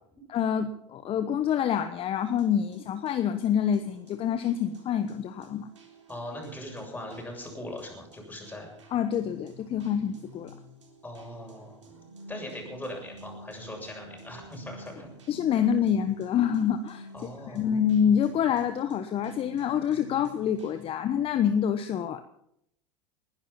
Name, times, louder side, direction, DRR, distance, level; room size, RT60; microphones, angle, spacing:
voice 1, 0.3-5.7 8.9-10.6 15.3-17.1 17.5-22.2, left 8 dB, 40° left, 9 dB, 1.1 m, -27 dB
sound 1, 2.2-20.9, equal, 85° right, 3.7 m, -50 dB
voice 2, 6.1-8.7 11.0-11.8 12.3-15.1 17.1-17.8, left 1 dB, 10° left, 0 dB, 7.3 m, -40 dB
20.0 x 11.5 x 5.8 m, 0.74 s
hypercardioid pair, 85°, 15 cm